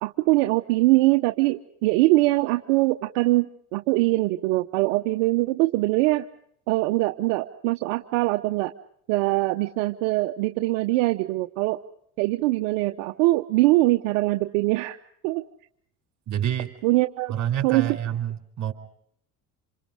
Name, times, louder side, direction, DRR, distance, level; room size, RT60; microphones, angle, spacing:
voice 1, 0.0-6.3 6.7-8.7 9.1-11.8 12.2-15.0 15.2-15.4 16.8-17.3 17.6-18.0, right 20 dB, 80° right, 6 dB, 1.0 m, -22 dB
voice 2, 16.3-16.7 17.3-18.7, right 10 dB, 45° right, 6 dB, 4.5 m, -27 dB
27.0 x 27.0 x 5.1 m, 0.69 s
supercardioid pair, 95°, 38 cm